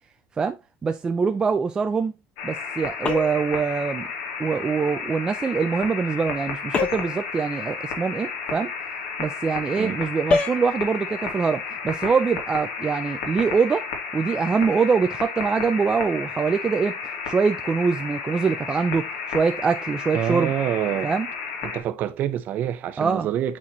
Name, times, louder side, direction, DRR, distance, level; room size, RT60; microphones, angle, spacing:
voice 1, 0.4-2.1 2.4-4.1 4.4-8.7 9.2-13.9 14.1-17.0 17.3-20.5 21.0-21.3 23.0-23.3, right 5 dB, 15° right, 0.4 m, -24 dB
sound 1, 2.4-21.8, left 5 dB, 75° left, 2.8 m, -32 dB
sound 2, 3.0-3.5 6.7-7.2 10.3-10.6, left 4 dB, 25° left, 0.9 m, -24 dB
voice 2, 20.1-21.1 21.6-23.6, right 11 dB, 35° right, 0.7 m, -26 dB
8.4 x 4.3 x 3.0 m
cardioid pair, 175°, 5 cm